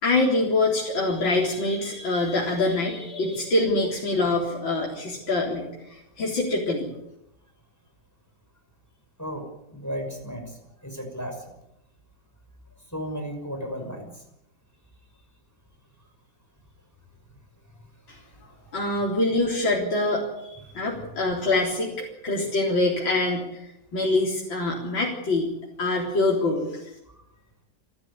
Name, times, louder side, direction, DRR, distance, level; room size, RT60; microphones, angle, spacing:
voice 1, 0.0-6.9 18.1-18.2 18.7-25.5 25.8-26.9, left 2 dB, 90° left, -3 dB, 4.6 m, -25 dB
voice 2, 9.2-11.4 12.9-14.2 17.7-17.8 18.2-18.8 20.7-21.1 27.1-27.2, equal, 10° left, 4 dB, 5.8 m, -36 dB
29.0 x 13.0 x 9.8 m, 0.85 s
omnidirectional pair, 2.0 m